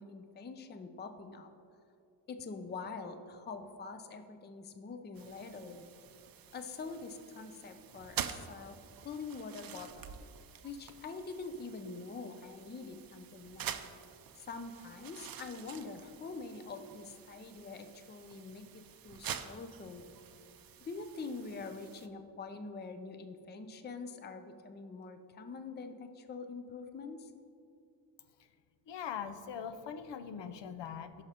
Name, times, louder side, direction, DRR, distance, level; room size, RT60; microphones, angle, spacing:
voice 1, 0.0-1.5 2.3-5.9 6.5-8.8 9.0-10.1 10.6-13.8 14.5-20.0 20.8-27.3, left 4 dB, 25° left, 8 dB, 0.4 m, -45 dB
sound 1, 5.1-22.1, right 9 dB, 55° right, 0.5 m, -47 dB
voice 2, 28.9-31.2, left 7 dB, 80° left, 10 dB, 0.6 m, -41 dB
16.5 x 6.1 x 2.8 m, 2.5 s
wide cardioid pair, 180°, 42 cm